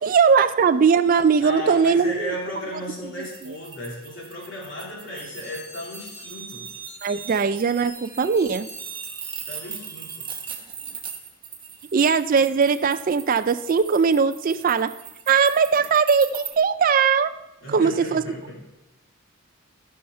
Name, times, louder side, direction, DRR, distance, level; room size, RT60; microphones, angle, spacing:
voice 1, 0.0-2.3 7.0-8.7 11.9-14.9 15.3-17.3 17.7-18.2, right 6 dB, 40° right, 10 dB, 0.3 m, -20 dB
voice 2, 1.4-6.7 9.5-10.2 17.6-18.6, equal, 60° left, -3 dB, 3.2 m, -35 dB
sound 1, 3.2-16.5, right 7 dB, 25° right, 1.1 m, -40 dB
sound 2, 5.1-10.9, right 3 dB, 10° left, 1.8 m, -43 dB
14.0 x 5.6 x 5.5 m, 0.93 s
head